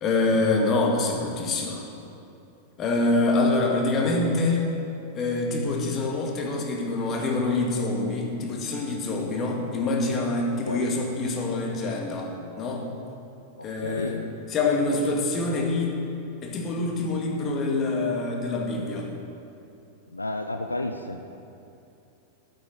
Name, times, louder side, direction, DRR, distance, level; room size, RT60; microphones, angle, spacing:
voice 1, 0.0-1.8 2.8-4.6 5.1-12.9 13.6-14.2 14.5-16.0 16.4-19.1, left 2 dB, 30° left, 1 dB, 2.0 m, -25 dB
voice 2, 13.6-14.3 20.1-21.2, left 2 dB, 85° left, 6 dB, 0.5 m, -31 dB
9.2 x 8.2 x 9.2 m, 2.8 s
figure-of-eight pair, 90°, 0 cm